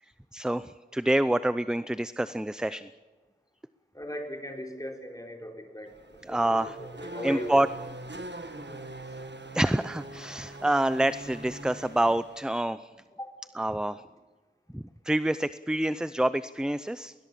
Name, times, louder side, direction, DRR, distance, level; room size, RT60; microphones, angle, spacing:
voice 1, 0.3-2.9 6.2-6.8 7.2-7.7 9.5-12.9 13.5-14.0 14.7-17.1, right 1 dB, 5° right, 14 dB, 0.6 m, -27 dB
voice 2, 3.9-5.9 6.3-6.7 7.0-7.6 8.6-8.8 13.2-13.3, equal, 20° left, 2 dB, 4.3 m, -38 dB
Race car auto racing / Accelerating revving vroom, 5.9-12.6, right 2 dB, 75° right, 1.6 m, -42 dB
21.0 x 20.5 x 7.1 m, 1.3 s
wide cardioid pair, 45°, 18 cm